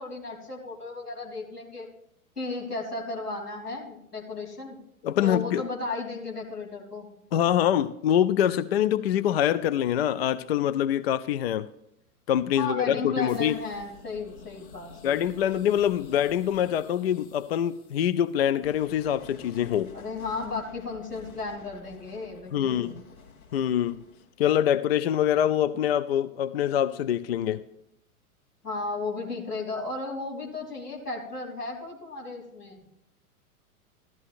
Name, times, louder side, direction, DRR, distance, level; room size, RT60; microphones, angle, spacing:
voice 1, 0.0-1.9 2.4-4.8 5.2-7.1 12.6-15.2 19.9-23.0 28.6-32.9, left 3 dB, 85° left, 3.5 m, -34 dB
voice 2, 5.0-5.6 7.3-11.7 12.3-13.6 15.0-19.9 22.5-22.9 23.5-24.0 24.4-27.6, left 10 dB, 45° left, 0.4 m, -25 dB
sound 1, 13.3-25.1, left 4 dB, 65° left, 4.0 m, -51 dB
14.5 x 13.0 x 2.5 m
figure-of-eight pair, 100°, 45 cm